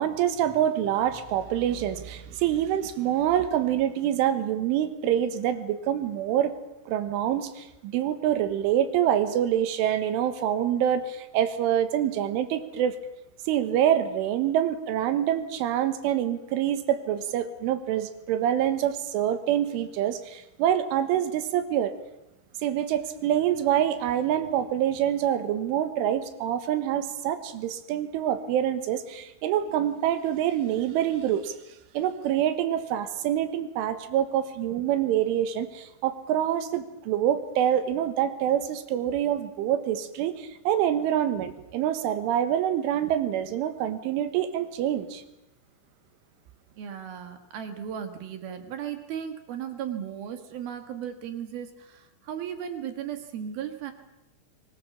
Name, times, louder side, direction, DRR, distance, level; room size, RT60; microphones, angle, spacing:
voice 1, 0.0-6.5 6.9-13.0 13.5-21.9 22.6-31.6 32.0-45.2, right 10 dB, 75° right, 10 dB, 3.7 m, -26 dB
voice 2, 46.8-53.9, right 9 dB, 60° right, 7 dB, 2.9 m, -36 dB
24.0 x 20.5 x 7.2 m, 0.91 s
omnidirectional pair, 5.9 m